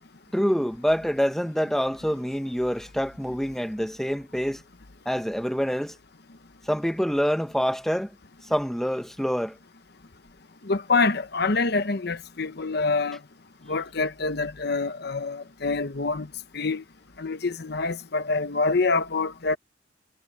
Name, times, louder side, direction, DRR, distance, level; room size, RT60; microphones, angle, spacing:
voice 1, 0.3-4.6 5.0-5.9 6.7-8.1 8.5-9.5, equal, ahead, 1.1 m, -26 dB
voice 2, 10.6-13.2 13.7-16.3 16.5-16.8 17.2-19.6, left 3 dB, 55° left, 0.9 m, -26 dB
head